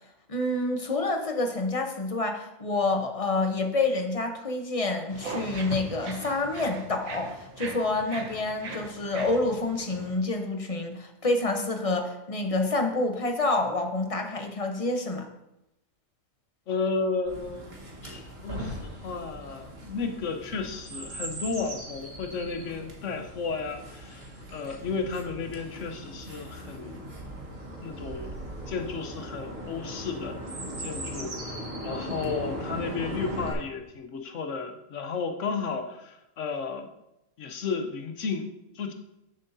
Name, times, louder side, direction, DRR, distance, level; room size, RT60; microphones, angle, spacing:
voice 1, 0.3-15.3, left 2 dB, 30° left, 4 dB, 0.9 m, -28 dB
sound 1, 5.1-10.2, right 3 dB, 90° right, 1.6 m, -40 dB
voice 2, 16.7-17.7 18.0-27.0 27.8-28.3 28.7-36.9 37.4-38.9, left 4 dB, 65° left, 6 dB, 1.2 m, -33 dB
Chirp tweet, 17.3-33.5, right 1 dB, 50° right, 1.7 m, -39 dB
12.0 x 7.4 x 2.7 m, 0.89 s
omnidirectional pair, 1.4 m